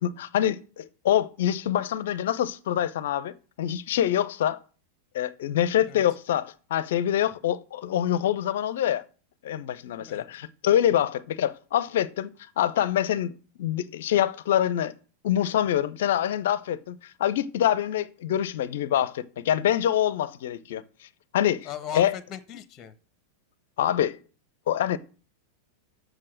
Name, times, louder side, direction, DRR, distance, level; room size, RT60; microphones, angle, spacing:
voice 1, 0.0-4.6 5.1-9.0 9.4-12.3 12.6-14.9 15.2-20.8 21.3-21.7 21.9-22.1 23.8-24.2 24.7-25.0, left 11 dB, 55° left, 0.6 m, -25 dB
voice 2, 21.6-22.9, left 9 dB, 30° left, 0.9 m, -38 dB
7.6 x 6.3 x 6.3 m
figure-of-eight pair, 90°, 0 cm